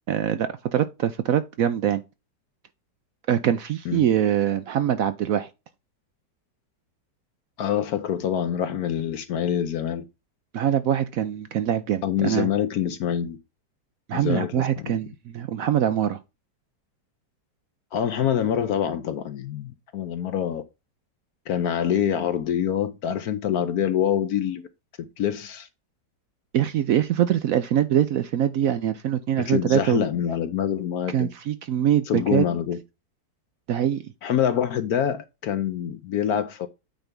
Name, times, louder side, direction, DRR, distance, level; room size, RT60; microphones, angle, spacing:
voice 1, 0.1-2.0 3.3-5.5 10.5-12.5 14.1-16.2 26.5-30.0 31.1-32.4 33.7-34.1, right 10 dB, 70° right, 0.8 m, -23 dB
voice 2, 7.6-10.0 12.0-13.4 14.1-15.0 17.9-20.6 21.5-24.7 25.0-25.7 29.4-31.3 32.1-32.8 34.2-36.7, left 9 dB, 65° left, 1.1 m, -25 dB
8.9 x 3.4 x 5.2 m
omnidirectional pair, 1.9 m